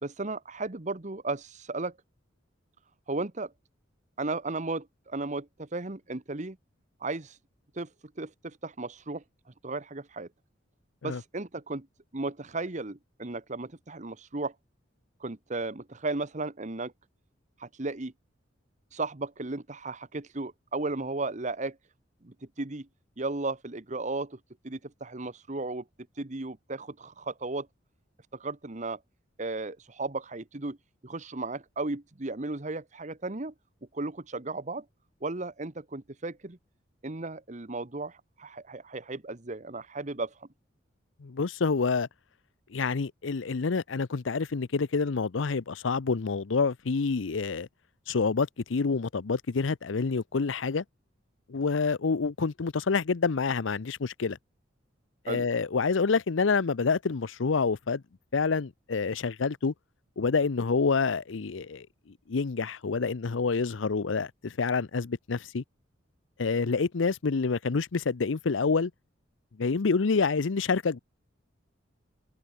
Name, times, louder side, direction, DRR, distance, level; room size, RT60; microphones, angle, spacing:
voice 1, 0.0-1.9 3.1-3.5 4.2-6.6 7.0-7.4 7.7-7.9 8.2-9.2 9.6-10.3 11.0-11.9 12.1-14.5 15.2-16.9 17.6-18.1 18.9-21.8 22.2-22.9 23.2-24.4 24.6-25.8 26.1-27.7 28.3-29.0 29.4-30.8 31.0-33.5 33.9-34.8 35.2-36.6 37.0-40.5 55.3-55.5, right 3 dB, 40° right, 1.2 m, -35 dB
voice 2, 41.2-42.1 42.7-47.7 48.1-50.8 51.5-54.4 55.2-58.0 58.3-59.7 60.2-61.9 62.3-65.6 66.4-68.9 69.6-71.0, left 4 dB, 80° left, 0.6 m, -27 dB
head